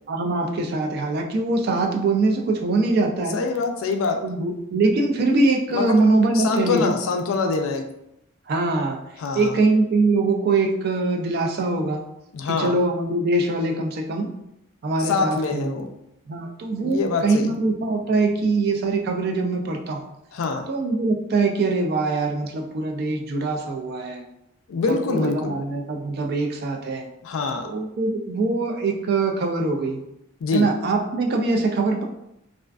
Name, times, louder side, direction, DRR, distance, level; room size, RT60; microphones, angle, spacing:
voice 1, 0.1-3.4 4.2-7.0 8.5-9.0 9.3-12.0 12.5-14.3 14.8-15.8 16.3-20.0 20.7-24.2 25.1-27.1 27.6-30.0 30.5-32.0, right 3 dB, 45° right, 3 dB, 0.3 m, -23 dB
voice 2, 3.3-4.2 5.7-5.9 6.3-7.9 9.2-9.6 12.3-12.8 15.0-15.9 16.8-17.6 20.3-20.7 24.7-25.5 27.2-27.7 30.4-30.7, left 4 dB, 70° left, 5 dB, 0.3 m, -24 dB
2.4 x 2.3 x 2.2 m, 0.82 s
head